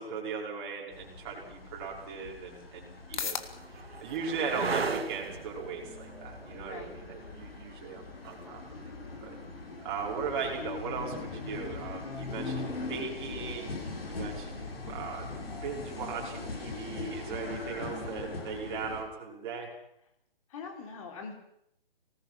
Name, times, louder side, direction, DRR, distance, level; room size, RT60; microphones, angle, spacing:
voice 1, 0.0-3.4 3.7-8.9 9.2-9.3 9.8-13.7 14.1-15.3 15.6-19.7, right 5 dB, 25° right, -2 dB, 5.8 m, -38 dB
sound 1, 0.9-19.0, left 3 dB, 75° left, 6.2 m, -41 dB
sound 2, 1.5-1.6 2.4-10.0 12.3-12.9, right 4 dB, 85° right, 1.9 m, -39 dB
sound 3, 2.6-18.6, left 6 dB, 50° left, 2.2 m, -49 dB
voice 2, 20.5-21.3, left 5 dB, 35° left, 2 dB, 4.4 m, -42 dB
24.5 x 19.5 x 6.1 m, 0.76 s
hypercardioid pair, 155°, 30 cm